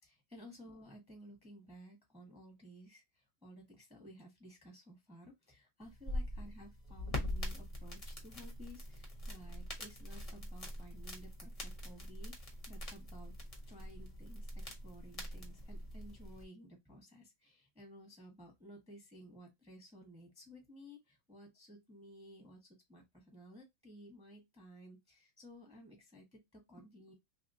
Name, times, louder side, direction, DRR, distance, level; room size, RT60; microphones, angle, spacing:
voice 1, 0.0-13.3 13.7-27.1, equal, 5° right, 1.0 m, -56 dB
sound 1, 5.8-16.4, left 1 dB, 30° left, 0.7 m, -43 dB
3.5 x 3.1 x 2.6 m
omnidirectional pair, 2.2 m